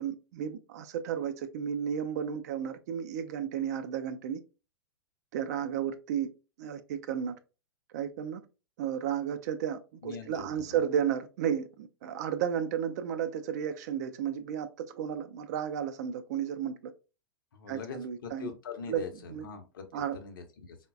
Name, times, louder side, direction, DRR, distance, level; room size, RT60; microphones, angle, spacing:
voice 1, 0.0-4.4 5.3-6.3 6.6-7.3 7.9-8.4 8.8-16.9 17.7-18.5 18.9-19.0 19.3-19.5 19.9-20.2, right 8 dB, 45° right, 0.3 m, -33 dB
voice 2, 10.0-10.8 17.5-19.9 20.1-20.8, left 5 dB, 60° left, 0.6 m, -42 dB
3.7 x 2.1 x 2.3 m
figure-of-eight pair, 95°, 12 cm